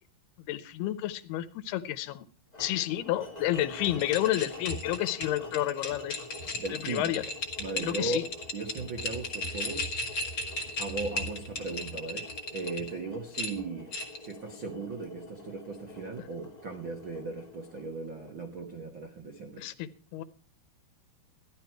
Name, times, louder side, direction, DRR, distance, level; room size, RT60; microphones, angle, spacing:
voice 1, 0.5-2.2 2.6-6.2 6.7-7.2 7.8-8.2 19.6-20.2, left 14 dB, 80° left, 14 dB, 2.7 m, -30 dB
sound 1, 2.5-18.6, left 2 dB, 20° left, 1.0 m, -47 dB
sound 2, 3.8-12.9 13.3-14.3, left 2 dB, 45° left, 1.5 m, -36 dB
voice 2, 6.5-7.1 7.6-10.0 10.8-13.9 14.2-19.6, right 3 dB, 70° right, 3 dB, 1.2 m, -37 dB
14.5 x 11.0 x 4.5 m, 0.38 s
omnidirectional pair, 4.6 m